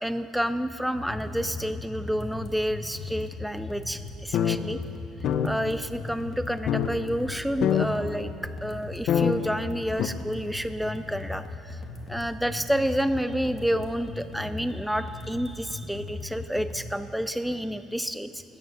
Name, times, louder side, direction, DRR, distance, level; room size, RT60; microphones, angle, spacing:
voice 1, 0.0-4.8 5.4-8.3 8.6-11.8 12.1-18.4, equal, ahead, 11 dB, 0.3 m, -29 dB
sound 1, 1.0-17.0, left 3 dB, 35° left, 1.6 m, -39 dB
sound 2, 3.7-3.8 4.2-4.6 4.9-5.0 5.2-5.5 6.1-6.2 6.7-6.9 7.3-7.4 7.6-7.9 8.4-8.5 9.1-9.3 10.0-10.1, left 9 dB, 60° left, 0.7 m, -23 dB
14.5 x 9.3 x 6.4 m, 2.6 s
cardioid pair, 135°, 0 cm